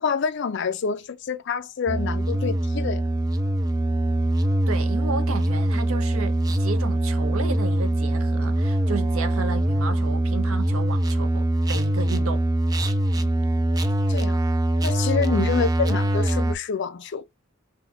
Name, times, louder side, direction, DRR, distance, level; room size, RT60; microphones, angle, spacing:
voice 1, 0.0-3.0 13.2-13.3 14.1-14.4 14.8-17.2, left 6 dB, 55° left, 0.4 m, -27 dB
sound 1, 1.9-16.5, right 1 dB, 20° right, 0.3 m, -23 dB
voice 2, 4.7-12.4 15.3-15.5, right 4 dB, 75° right, 0.7 m, -33 dB
3.5 x 2.6 x 2.4 m
head